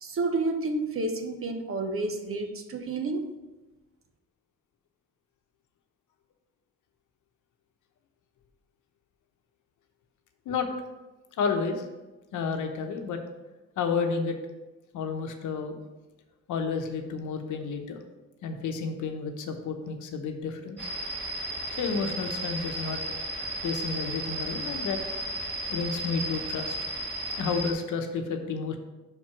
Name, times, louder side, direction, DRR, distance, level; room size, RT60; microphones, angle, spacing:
voice 1, 0.0-3.3, right 2 dB, 45° right, 6 dB, 1.0 m, -30 dB
voice 2, 11.4-11.9 12.3-13.2 13.8-14.4 14.9-15.8 16.5-18.0 18.4-20.8 21.7-23.0 23.6-25.0 25.7-26.8 27.4-28.8, left 5 dB, 80° left, 5 dB, 1.0 m, -31 dB
sound 1, 20.8-27.7, right 1 dB, 5° left, 2.4 m, -34 dB
5.8 x 4.5 x 5.9 m, 1.1 s
cardioid pair, 90°, 30 cm